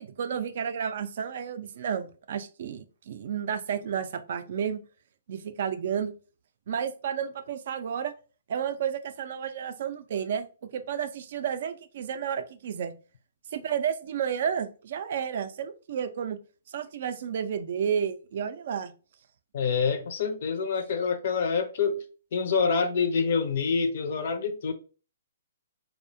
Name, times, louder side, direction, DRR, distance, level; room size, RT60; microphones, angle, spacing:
voice 1, 0.0-4.8 5.3-6.1 6.7-8.1 8.5-12.9 13.5-16.4 16.7-18.9, right 8 dB, 55° right, 0.3 m, -31 dB
voice 2, 19.5-22.0 22.3-24.7, left 5 dB, 55° left, 0.4 m, -26 dB
2.6 x 2.0 x 2.5 m
hypercardioid pair, 150°, 0 cm